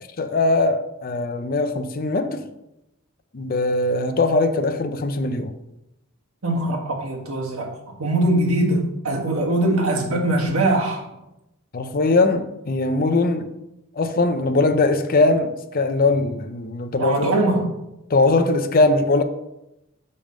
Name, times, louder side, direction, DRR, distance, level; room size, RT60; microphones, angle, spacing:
voice 1, 0.2-2.4 3.3-5.6 11.7-13.5 13.9-17.3 18.1-19.2, left 2 dB, 40° left, 0.5 m, -20 dB
voice 2, 6.4-11.0 17.0-17.7, right 1 dB, 70° right, 1.7 m, -22 dB
5.4 x 5.2 x 6.3 m
head